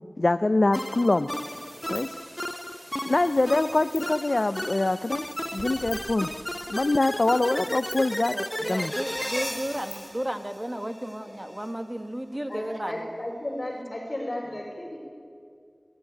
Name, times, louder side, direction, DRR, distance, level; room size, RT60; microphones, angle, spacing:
voice 1, 0.2-1.3 1.9-2.2 3.0-6.3 6.7-8.4 8.7-8.9, left 2 dB, 65° left, 12 dB, 0.5 m, -24 dB
sound 1, 0.7-11.1, left 1 dB, 15° left, 0.7 m, -34 dB
sound 2, 1.3-10.1, right 1 dB, 50° right, 5.4 m, -47 dB
voice 2, 8.3-13.1 13.7-13.9 14.5-14.6, right 1 dB, 25° right, 8 dB, 1.5 m, -34 dB
voice 3, 12.5-15.0, left 1 dB, 45° left, -2 dB, 4.0 m, -34 dB
28.5 x 12.5 x 9.2 m, 2.2 s
wide cardioid pair, 45°, 0 cm